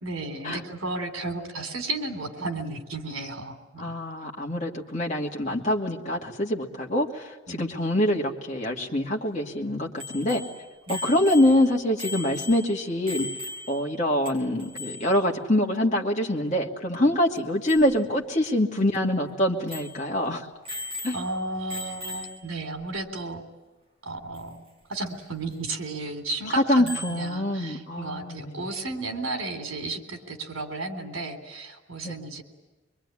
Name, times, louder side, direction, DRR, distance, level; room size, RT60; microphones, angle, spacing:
voice 1, 0.0-3.9 7.5-7.8 10.9-11.1 21.1-23.4 24.0-24.6 24.9-32.4, right 2 dB, 85° right, 6 dB, 3.6 m, -33 dB
voice 2, 3.8-10.4 10.9-13.3 13.7-20.4 21.0-21.2 26.5-28.6 32.0-32.2, left 1 dB, 35° left, -1 dB, 2.3 m, -25 dB
Bicycle bell, 10.0-14.0 14.3-14.4 14.6-15.1 17.3-17.4 17.7-17.9 18.5-18.6 18.9-19.0 19.7-20.0 20.6-21.4 21.7-22.5 24.4-24.5 26.9-27.2, left 2 dB, 30° right, 7.5 m, -38 dB
24.0 x 24.0 x 10.0 m, 1.2 s
head